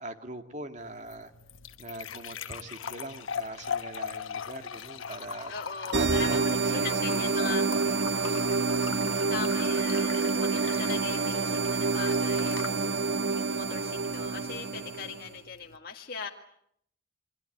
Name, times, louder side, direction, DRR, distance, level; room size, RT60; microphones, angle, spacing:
voice 1, 0.0-1.3 1.8-5.5 5.9-8.1, right 2 dB, 35° right, 6 dB, 2.1 m, -42 dB
sound 1, 0.8-15.8, left 7 dB, 90° left, 1.1 m, -41 dB
voice 2, 5.5-7.7 8.6-12.7 13.0-16.3, left 5 dB, 50° left, 1 dB, 1.8 m, -40 dB
sound 2, 5.9-15.3, right 4 dB, 60° right, 1.2 m, -28 dB
28.0 x 22.5 x 8.0 m, 0.71 s
head